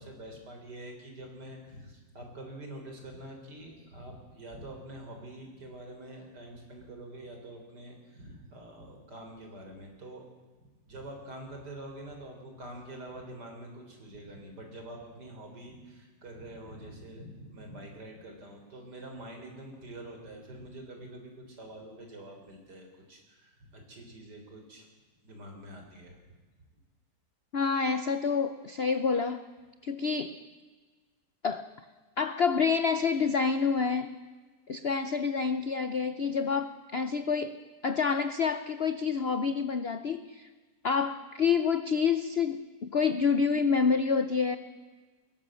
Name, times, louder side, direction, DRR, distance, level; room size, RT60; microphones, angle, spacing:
voice 1, 0.0-10.2 10.8-24.9 25.2-26.2, right 1 dB, 60° right, 3 dB, 4.5 m, -46 dB
voice 2, 27.5-29.4 29.8-30.4 31.4-31.7 32.2-34.1 34.7-37.6 37.8-40.5 40.8-44.6, left 5 dB, 55° left, 10 dB, 0.7 m, -28 dB
21.0 x 18.0 x 7.6 m, 1.3 s
omnidirectional pair, 2.0 m